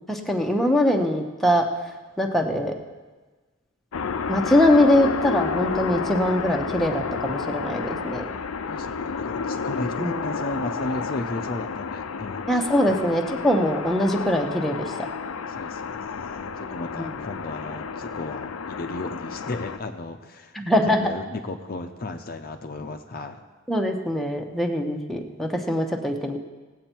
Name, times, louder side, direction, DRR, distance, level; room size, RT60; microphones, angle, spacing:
voice 1, 0.1-1.6 2.2-2.7 4.3-8.2 10.0-10.2 12.5-14.9 17.0-17.1 20.5-21.1 23.7-26.4, left 1 dB, ahead, 1 dB, 0.9 m, -22 dB
sound 1, 3.9-19.8, left 5 dB, 85° left, 0.6 m, -31 dB
voice 2, 8.7-12.5 12.9-13.0 15.5-20.5 20.8-23.4, left 2 dB, 45° left, 6 dB, 0.7 m, -34 dB
17.5 x 7.9 x 4.5 m, 1.3 s
head